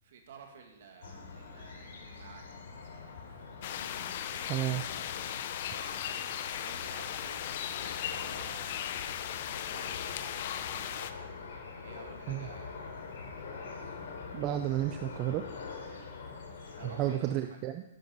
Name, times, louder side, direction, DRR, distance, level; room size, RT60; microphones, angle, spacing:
voice 1, 0.0-2.4 2.7-3.0 4.2-4.5 5.7-8.9 9.4-11.1 11.8-13.2 15.8-16.1 16.7-17.6, right 6 dB, 50° right, 3 dB, 2.3 m, -54 dB
sound 1, 1.0-17.2, left 4 dB, 65° left, 3.1 m, -45 dB
sound 2, 3.6-11.1, left 10 dB, 40° left, 0.6 m, -37 dB
voice 2, 4.5-4.8 12.3-12.5 14.3-15.4 16.8-17.8, right 13 dB, 20° right, 8 dB, 0.4 m, -32 dB
11.0 x 10.5 x 5.5 m, 0.91 s
hypercardioid pair, 175°, 0 cm